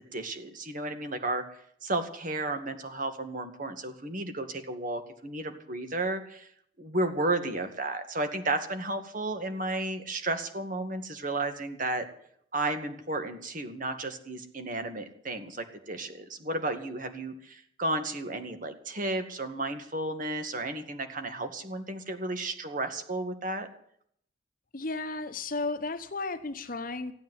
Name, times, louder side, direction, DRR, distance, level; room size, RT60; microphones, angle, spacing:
voice 1, 0.1-1.4 1.8-6.5 6.8-12.1 12.5-23.7, right 2 dB, 45° right, 7 dB, 2.1 m, -33 dB
voice 2, 24.7-27.1, left 3 dB, 45° left, 10 dB, 1.1 m, -34 dB
16.0 x 9.2 x 9.5 m, 0.65 s
head